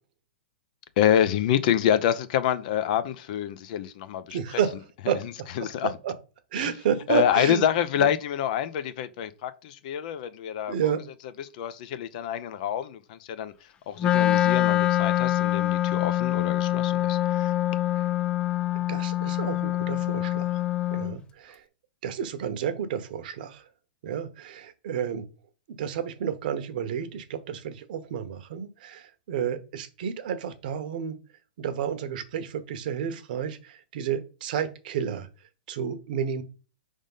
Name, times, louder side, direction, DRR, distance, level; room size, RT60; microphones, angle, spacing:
voice 1, 1.0-4.6 5.6-5.9 6.6-6.7 7.1-10.9 11.4-13.5 13.9-17.5, left 10 dB, 50° left, 0.7 m, -27 dB
voice 2, 4.3-4.8 5.1-5.2 5.8-6.1 6.5-7.7 7.9-8.1 10.7-11.0 17.9-18.0 18.7-20.5 20.9-21.6 22.0-23.6 24.0-25.3 25.7-31.2 31.6-35.3 35.7-36.4, right 8 dB, 55° right, 1.0 m, -31 dB
Wind instrument woodwind instrument, 14.0-21.2, left 14 dB, 15° left, 0.4 m, -25 dB
5.1 x 3.6 x 5.5 m
hypercardioid pair, 135°, 6 cm